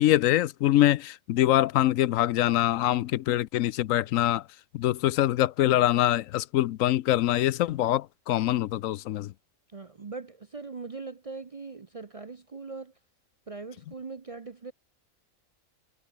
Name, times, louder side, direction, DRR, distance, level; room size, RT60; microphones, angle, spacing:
voice 1, 0.0-4.4 4.7-9.3, left 14 dB, 80° left, 1.0 m, -24 dB
voice 2, 9.7-12.9 13.5-14.7, right 4 dB, 35° right, 0.6 m, -40 dB
omnidirectional pair, 1.4 m